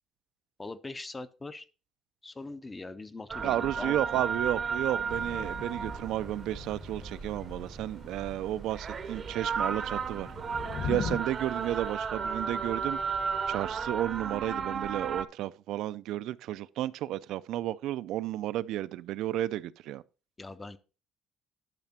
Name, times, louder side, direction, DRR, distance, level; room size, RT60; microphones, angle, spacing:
voice 1, 0.6-1.7 2.2-4.2 20.4-20.8, left 3 dB, 15° left, 0.5 m, -41 dB
sound 1, 3.3-15.2, right 6 dB, 30° right, 0.6 m, -34 dB
voice 2, 3.4-10.3 10.8-13.0 13.5-20.0, right 13 dB, 70° right, 0.4 m, -32 dB
Thunder / Rain, 5.1-11.2, left 5 dB, 50° left, 1.3 m, -41 dB
10.5 x 5.9 x 4.2 m
cardioid pair, 175°, 0 cm